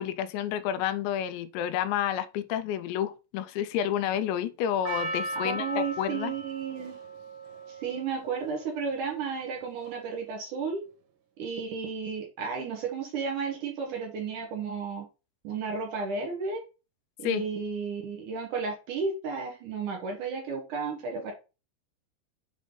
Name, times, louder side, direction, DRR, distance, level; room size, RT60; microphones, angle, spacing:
voice 1, 0.0-6.3 17.2-17.5, left 10 dB, 85° left, 2.8 m, -30 dB
Percussion, 4.9-9.2 9.9-10.0, right 1 dB, 80° right, 3.5 m, -37 dB
voice 2, 5.4-6.9 7.8-10.8 11.4-15.1 15.4-16.6 17.2-21.3, right 5 dB, 65° right, 2.1 m, -33 dB
7.4 x 3.6 x 3.8 m
omnidirectional pair, 5.1 m